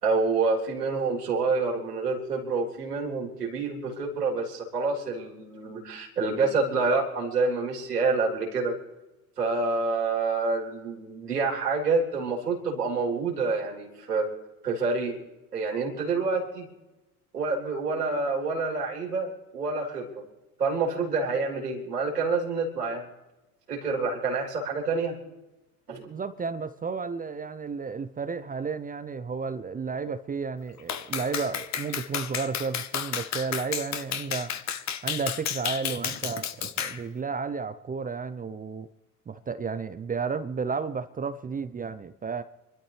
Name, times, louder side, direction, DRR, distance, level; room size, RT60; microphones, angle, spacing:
voice 1, 0.0-8.8 9.4-14.3 14.6-15.2 15.5-16.7 17.3-20.2 20.6-23.0 23.7-25.2 25.9-26.0, right 4 dB, 85° right, -2 dB, 3.5 m, -27 dB
voice 2, 26.0-34.5 35.0-38.9 39.3-42.4, right 5 dB, 20° right, 11 dB, 0.7 m, -32 dB
Clapping, 30.9-37.0, left 9 dB, 35° left, 1.3 m, -32 dB
27.0 x 12.5 x 3.4 m, 1.0 s
figure-of-eight pair, 70°, 46 cm